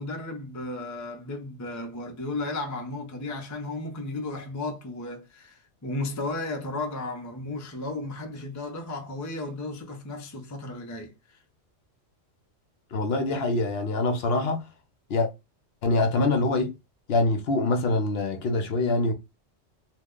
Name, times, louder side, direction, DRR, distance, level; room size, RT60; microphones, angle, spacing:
voice 1, 0.0-11.4, left 2 dB, 25° left, 0.4 m, -34 dB
voice 2, 12.9-14.6 15.1-15.3 15.8-16.7 17.1-19.1, left 2 dB, 65° left, 0.8 m, -24 dB
2.8 x 2.1 x 3.6 m
omnidirectional pair, 1.2 m